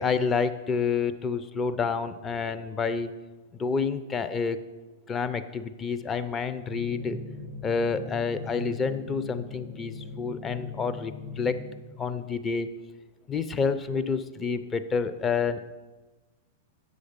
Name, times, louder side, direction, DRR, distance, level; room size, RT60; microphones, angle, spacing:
voice 1, 0.0-3.1 3.5-4.6 5.1-7.2 7.6-11.6 12.0-12.7 13.3-15.6, left 5 dB, 20° left, 10 dB, 0.5 m, -28 dB
sound 1, 6.7-11.8, left 2 dB, 80° left, 2.9 m, -39 dB
7.8 x 6.4 x 5.1 m, 1.2 s
hypercardioid pair, 115°, 0 cm